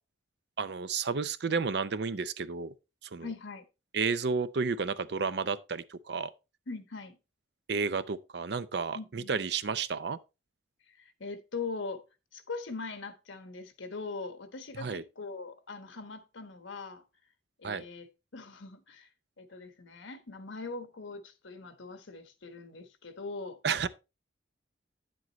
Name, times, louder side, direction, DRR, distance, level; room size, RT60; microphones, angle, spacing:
voice 1, 0.6-2.7 3.1-3.3 3.9-6.3 7.7-10.2 14.8-15.0 17.6-17.8 23.6-23.9, right 5 dB, 60° right, 0.5 m, -31 dB
voice 2, 3.2-3.6 6.7-7.2 8.9-9.3 10.9-12.0 12.3-17.0 17.6-19.1 19.4-23.6, left 4 dB, 90° left, 1.2 m, -41 dB
9.2 x 7.6 x 3.0 m
head